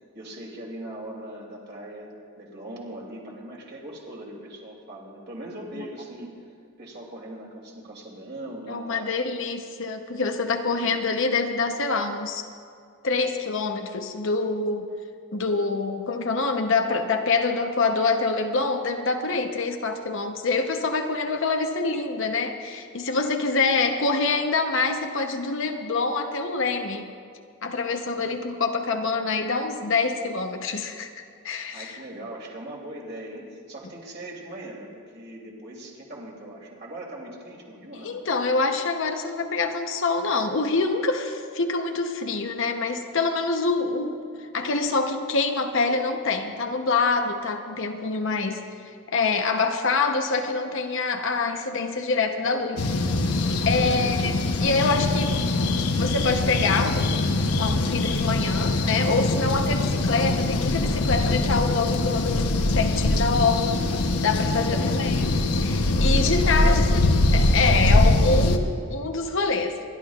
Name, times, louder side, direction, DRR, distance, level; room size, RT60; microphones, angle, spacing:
voice 1, 0.1-2.1 2.4-6.5 6.8-9.1 10.6-11.0 28.1-28.6 31.7-38.2 53.8-54.2 55.2-55.4 64.5-64.9 66.1-67.2, right 1 dB, 45° right, -3 dB, 2.8 m, -40 dB
voice 2, 8.7-12.5 13.0-14.9 15.3-27.1 27.6-32.0 38.0-44.2 44.5-48.6 49.1-52.9 53.6-54.3 54.6-55.4 56.0-63.9 64.2-67.1 67.3-69.8, left 4 dB, 55° left, 5 dB, 0.8 m, -25 dB
sound 1, 52.8-68.6, left 2 dB, 90° left, 0.9 m, -23 dB
28.5 x 11.5 x 2.4 m, 2.3 s
head